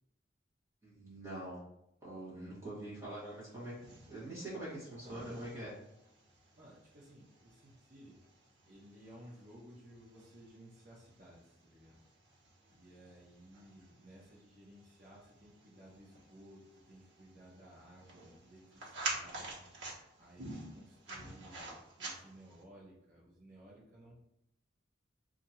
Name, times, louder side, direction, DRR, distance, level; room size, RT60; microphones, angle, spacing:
voice 1, 0.8-1.6 2.0-3.7 4.1-5.7, right 1 dB, 15° right, -9 dB, 1.3 m, -44 dB
voice 2, 2.2-2.6 6.6-8.2 8.6-12.0 12.7-16.6 16.9-19.7 20.2-24.3, right 1 dB, 45° right, -6 dB, 0.8 m, -57 dB
sound 1, 3.2-22.6, right 2 dB, 70° right, 1.1 m, -49 dB
2.8 x 2.5 x 4.2 m, 0.80 s
head